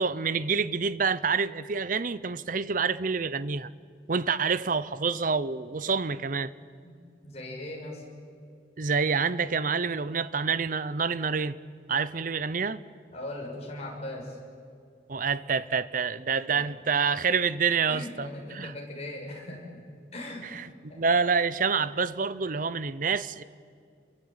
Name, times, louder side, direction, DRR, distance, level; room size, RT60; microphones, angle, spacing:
voice 1, 0.0-3.7 4.1-6.5 8.8-11.6 11.9-12.8 15.1-18.7 20.5-23.4, right 5 dB, 50° right, 0.7 m, -27 dB
voice 2, 6.8-8.1 13.1-14.4 16.5-16.6 17.9-19.8 20.1-20.5 20.9-21.0, left 1 dB, 35° left, 6.6 m, -39 dB
29.0 x 23.0 x 8.9 m
head